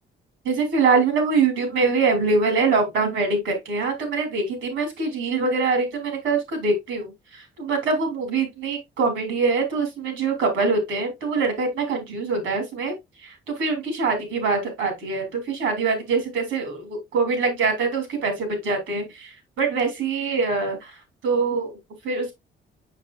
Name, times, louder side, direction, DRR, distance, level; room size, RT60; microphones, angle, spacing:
voice 1, 0.4-12.9 13.2-19.3 19.6-20.9 21.2-21.8 22.0-22.3, right 4 dB, 85° right, 2.9 m, -24 dB
6.6 x 6.0 x 2.4 m
cardioid pair, 90°, 20 cm